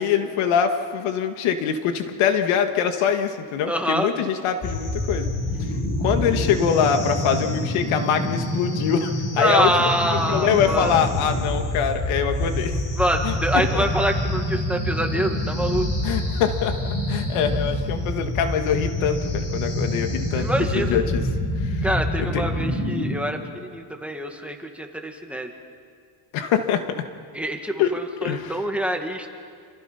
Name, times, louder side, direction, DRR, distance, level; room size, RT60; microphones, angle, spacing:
voice 1, 0.0-5.3 6.0-9.7 10.3-12.7 13.2-13.3 13.7-13.8 16.0-16.8 17.1-20.5 20.7-21.2 21.6-21.9 22.3-22.4 26.3-27.1 27.8-27.9 28.2-28.5, left 8 dB, 75° left, 7 dB, 2.0 m, -23 dB
voice 2, 3.7-4.1 9.4-11.0 13.0-15.9 20.3-21.0 21.8-25.5 27.3-29.3, right 1 dB, 5° right, 3 dB, 1.9 m, -25 dB
sound 1, 4.6-23.2, left 1 dB, 45° left, 6.4 m, -26 dB
28.0 x 27.0 x 5.8 m, 2.2 s
cardioid pair, 135°, 50 cm